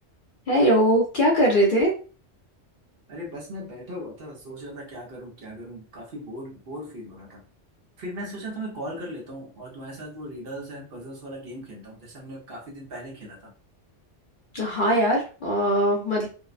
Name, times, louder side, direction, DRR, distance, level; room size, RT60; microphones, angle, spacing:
voice 1, 0.5-1.9 14.5-16.3, equal, 55° left, -1 dB, 0.7 m, -21 dB
voice 2, 3.1-7.4 8.0-13.5, equal, 55° right, -2 dB, 0.9 m, -38 dB
2.6 x 2.0 x 2.4 m, 0.37 s
omnidirectional pair, 1.3 m